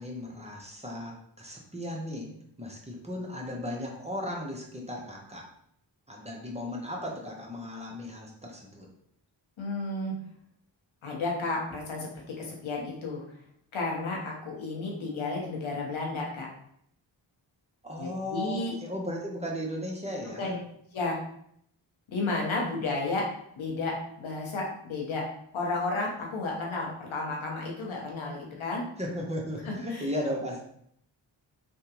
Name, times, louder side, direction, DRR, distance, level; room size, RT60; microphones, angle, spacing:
voice 1, 0.0-2.3 2.6-5.5 6.1-8.9 17.8-20.5 29.0-30.6, left 1 dB, 15° right, -1 dB, 0.8 m, -36 dB
voice 2, 9.6-10.1 11.0-13.2 13.7-16.5 18.0-18.7 20.4-20.6 20.9-21.2 22.1-23.3 23.5-25.3 25.5-28.8 29.6-30.1, left 3 dB, 85° left, -2 dB, 1.0 m, -32 dB
3.5 x 2.3 x 2.9 m, 0.69 s
cardioid pair, 55°, 47 cm